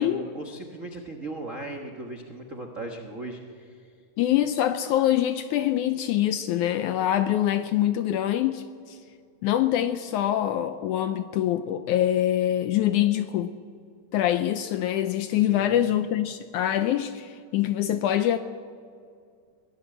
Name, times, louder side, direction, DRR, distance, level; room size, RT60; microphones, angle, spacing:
voice 1, 0.0-3.9 15.3-15.8, right 2 dB, 80° right, 3 dB, 0.7 m, -38 dB
voice 2, 4.2-9.0 9.4-13.5 14.1-18.4, left 12 dB, 80° left, 10 dB, 1.8 m, -24 dB
23.0 x 17.0 x 7.8 m, 2.2 s
omnidirectional pair, 4.1 m